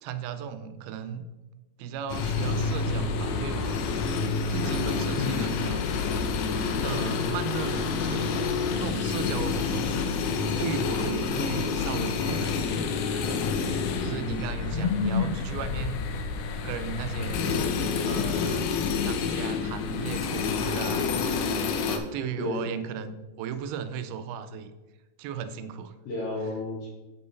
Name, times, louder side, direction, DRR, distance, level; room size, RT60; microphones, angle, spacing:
voice 1, 0.0-1.2 1.8-3.9 4.5-5.8 6.8-13.0 14.0-16.2 16.6-17.6 18.0-18.7 19.0-21.4 21.9-24.7 25.2-25.9, right 7 dB, 90° right, 11 dB, 2.5 m, -36 dB
sound 1, 2.1-22.0, left 5 dB, 90° left, 1.6 m, -28 dB
voice 2, 5.1-5.6 14.7-15.4 22.4-22.7 26.0-26.9, left 4 dB, 60° left, -4 dB, 1.7 m, -29 dB
8.5 x 5.6 x 4.0 m, 1.1 s
omnidirectional pair, 4.3 m